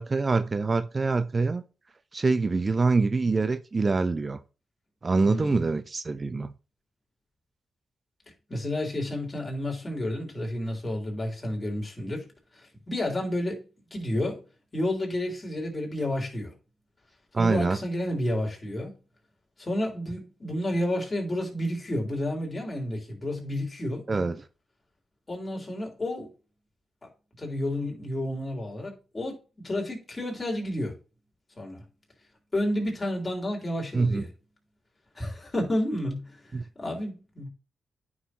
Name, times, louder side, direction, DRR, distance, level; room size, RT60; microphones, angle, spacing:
voice 1, 0.0-1.6 2.1-4.4 5.0-6.5 17.3-17.8 24.1-24.4 33.9-34.3 36.5-36.6, right 3 dB, 40° right, 0.5 m, -25 dB
voice 2, 5.2-5.7 8.5-12.3 12.5-14.4 14.7-16.5 17.4-18.9 19.6-24.0 25.3-26.3 27.4-31.0 31.6-31.8 32.5-34.3 35.2-37.5, left 1 dB, 30° left, 3.5 m, -31 dB
9.2 x 6.2 x 3.0 m
supercardioid pair, 45°, 0 cm